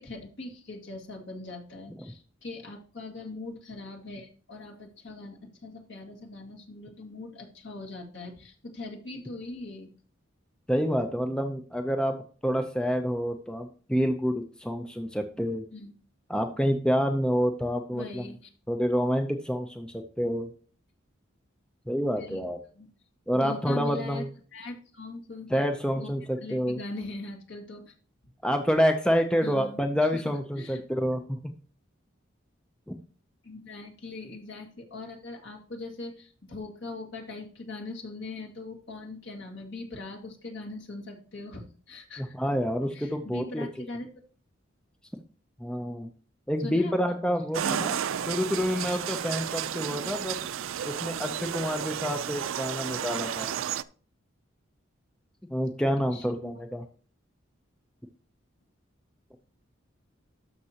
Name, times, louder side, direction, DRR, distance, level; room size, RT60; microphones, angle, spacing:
voice 1, 0.0-9.9 15.7-15.9 17.9-18.5 22.2-22.5 22.7-22.9 23.3-25.6 26.0-26.1 26.4-27.9 29.4-30.8 33.4-42.4 42.9-44.1 46.6-46.9 47.6-48.0 56.1-56.5, left 2 dB, 65° left, 1 dB, 2.1 m, -41 dB
voice 2, 10.7-12.2 12.4-15.6 16.3-18.3 18.7-20.5 21.9-22.6 23.3-24.3 25.5-26.8 28.4-31.4 42.2-43.7 45.6-46.1 46.5-47.9 48.3-50.4 50.8-53.5 55.5-56.8, equal, 5° left, 5 dB, 0.6 m, -28 dB
sound 1, 47.5-53.8, right 9 dB, 85° right, 0.4 m, -32 dB
13.0 x 6.0 x 2.9 m, 0.42 s
head